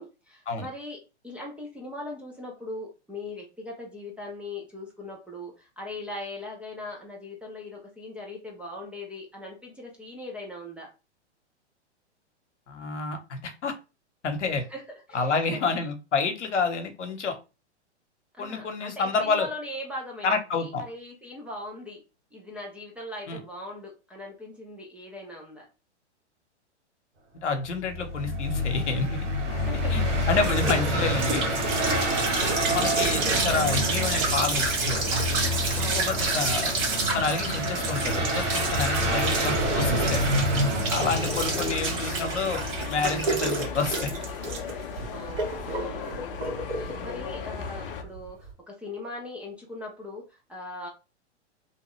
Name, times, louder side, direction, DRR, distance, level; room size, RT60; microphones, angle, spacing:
voice 1, 0.0-10.9 14.7-15.6 18.3-22.0 22.3-25.7 28.2-28.4 29.5-31.0 32.2-32.9 35.8-36.5 39.0-40.1 41.5-42.5 45.1-50.9, left 1 dB, 5° right, -2 dB, 0.4 m, -40 dB
voice 2, 12.7-13.7 14.2-14.6 15.1-17.4 18.4-19.5 20.2-20.8 23.3-23.4 27.4-29.1 29.9-31.4 32.7-35.1 35.9-36.7 37.1-40.3 40.9-42.6 42.9-44.1, left 4 dB, 80° left, 6 dB, 0.8 m, -29 dB
sound 1, 27.7-42.9, equal, 90° right, 1.0 m, -28 dB
sound 2, 29.4-48.5, right 3 dB, 50° right, 1.5 m, -30 dB
sound 3, 29.5-48.0, left 6 dB, 50° left, 0.6 m, -37 dB
2.8 x 2.2 x 3.0 m, 0.29 s
hypercardioid pair, 115°, 35 cm